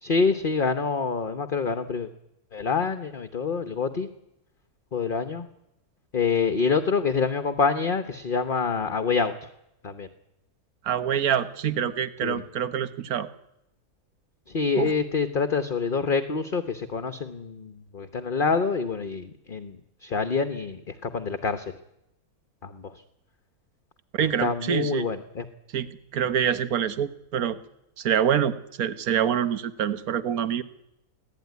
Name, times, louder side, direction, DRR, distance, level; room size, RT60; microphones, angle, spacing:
voice 1, 0.0-2.1 2.5-4.1 4.9-5.5 6.1-9.3 9.8-10.1 12.2-12.4 14.5-19.8 20.0-21.7 22.6-23.0 24.4-25.5, left 5 dB, 35° left, 10 dB, 1.1 m, -26 dB
voice 2, 10.8-13.3 14.8-14.9 24.1-25.1 25.7-27.6 28.0-30.6, right 9 dB, 65° right, 13 dB, 1.6 m, -26 dB
24.0 x 17.0 x 9.5 m, 0.83 s
omnidirectional pair, 1.7 m